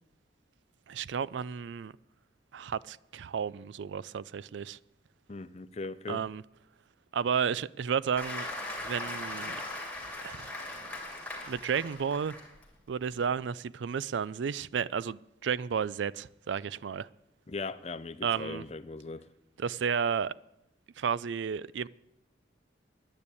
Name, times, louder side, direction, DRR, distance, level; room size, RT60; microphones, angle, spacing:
voice 1, 0.9-1.9 2.5-4.8 6.1-6.4 7.1-8.5 8.8-9.6 10.2-10.5 11.5-12.4 12.9-17.1 18.2-18.6 19.6-20.3 21.0-21.9, right 7 dB, 75° right, 0.4 m, -32 dB
voice 2, 5.3-6.2 17.5-19.3, left 3 dB, 35° left, 0.5 m, -39 dB
Applause, 8.2-12.6 13.1-13.3, left 2 dB, 5° left, 2.6 m, -39 dB
10.0 x 9.6 x 8.4 m
head